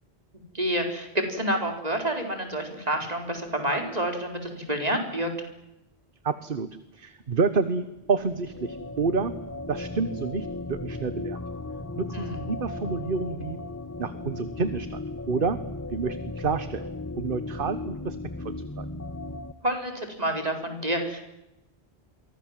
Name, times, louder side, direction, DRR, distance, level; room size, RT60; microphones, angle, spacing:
voice 1, 0.5-5.3 12.1-12.4 19.6-21.2, right 1 dB, 35° right, 4 dB, 4.6 m, -28 dB
voice 2, 6.2-6.7 6.9-9.3 9.7-11.4 12.0-13.6 14.0-15.0 15.3-15.6 15.9-16.8 17.2-18.2 18.8-18.9, right 4 dB, 55° right, 12 dB, 1.3 m, -28 dB
sound 1, 8.0-19.5, left 2 dB, 15° left, 1.2 m, -36 dB
29.0 x 23.5 x 7.5 m, 0.91 s
omnidirectional pair, 1.1 m